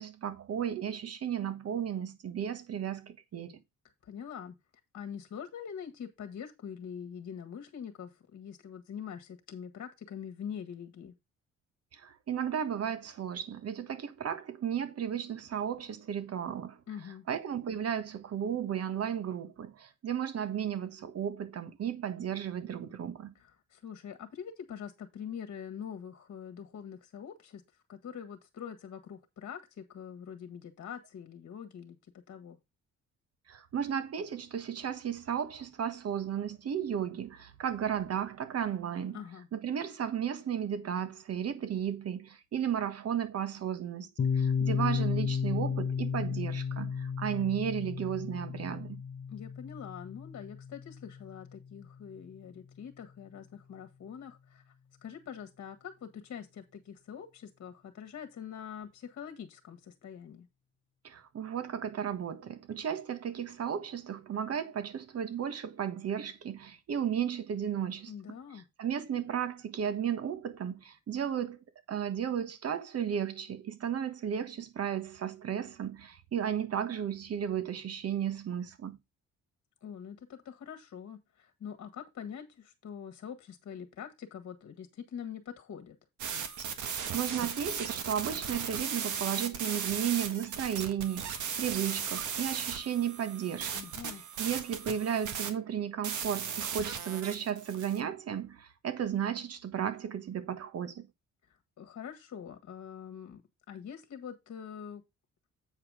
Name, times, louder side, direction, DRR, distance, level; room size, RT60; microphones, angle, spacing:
voice 1, 0.0-3.6 11.9-16.8 17.3-23.3 33.5-39.2 39.5-49.0 61.0-68.1 68.8-71.6 71.9-79.0 86.8-93.9 94.4-101.1, right 8 dB, 55° right, 1.4 m, -34 dB
voice 2, 4.0-4.5 4.9-11.1 16.9-17.2 23.3-27.6 27.9-32.0 32.3-32.6 39.1-39.5 49.3-54.7 55.0-60.5 68.1-68.6 79.8-86.0 93.7-94.2 101.5-103.4 103.7-105.0, left 8 dB, 60° left, 1.6 m, -44 dB
Piano, 44.2-51.6, left 6 dB, 40° left, 1.1 m, -33 dB
sound 1, 86.2-98.0, right 7 dB, 75° right, 1.7 m, -37 dB
8.3 x 5.0 x 4.9 m
cardioid pair, 90°, 30 cm